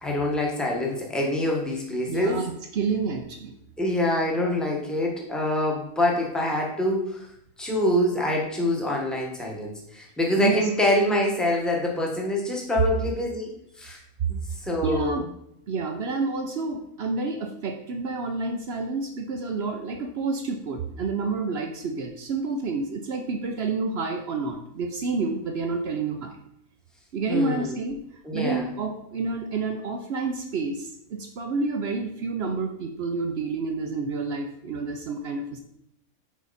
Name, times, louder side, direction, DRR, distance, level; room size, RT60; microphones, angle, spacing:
voice 1, 0.0-2.4 3.8-7.2 7.6-13.5 13.8-14.0 14.3-15.2 27.3-27.7 28.2-28.6, left 1 dB, ahead, -1 dB, 1.0 m, -25 dB
voice 2, 2.1-3.6 10.4-10.7 14.5-15.2 15.7-26.3 27.1-28.0 28.3-35.6, right 4 dB, 55° right, 4 dB, 0.7 m, -29 dB
6.3 x 4.7 x 4.0 m, 0.74 s
omnidirectional pair, 1.5 m